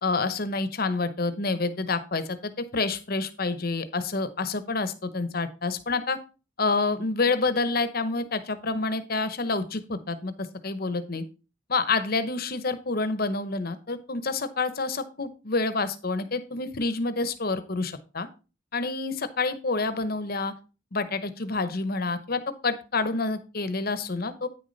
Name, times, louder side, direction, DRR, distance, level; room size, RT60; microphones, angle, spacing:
voice 1, 0.0-6.2 6.6-10.3 10.6-11.2 11.7-18.3 18.7-20.5 20.9-24.5, left 3 dB, 45° left, 12 dB, 0.9 m, -28 dB
9.3 x 6.5 x 4.1 m, 0.32 s
head